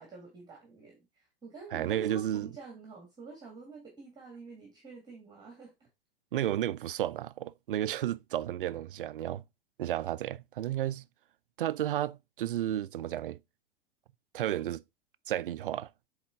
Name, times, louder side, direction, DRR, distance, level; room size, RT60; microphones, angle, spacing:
voice 1, 0.0-5.9 6.3-6.5, right 3 dB, 15° right, 1.7 m, -48 dB
voice 2, 1.7-2.5 6.3-9.4 9.8-11.1 11.6-13.4 14.3-14.8 15.3-15.9, right 12 dB, 65° right, 0.5 m, -32 dB
7.9 x 3.6 x 3.6 m
figure-of-eight pair, 95°, 29 cm